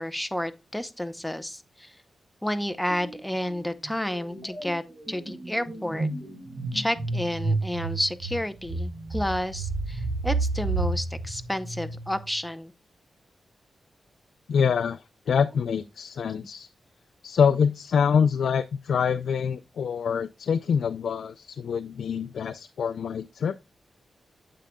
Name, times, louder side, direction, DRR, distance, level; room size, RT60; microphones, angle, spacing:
voice 1, 0.0-1.9 2.4-6.1 6.7-12.7 15.4-15.6, left 1 dB, 5° left, 0.7 m, -31 dB
sound 1, 2.9-3.2 3.5-12.3, right 3 dB, 60° right, 3.1 m, -31 dB
voice 2, 14.5-16.7 17.2-23.5, left 6 dB, 80° left, 0.4 m, -25 dB
8.8 x 7.4 x 2.2 m
wide cardioid pair, 105°, 0 cm